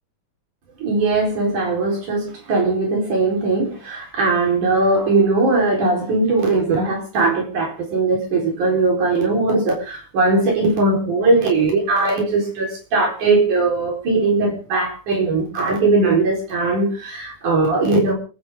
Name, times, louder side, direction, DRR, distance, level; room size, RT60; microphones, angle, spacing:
voice 1, 0.8-18.1, right 3 dB, 80° right, 1 dB, 5.6 m, -19 dB
28.0 x 9.6 x 3.6 m, 0.36 s
omnidirectional pair, 3.4 m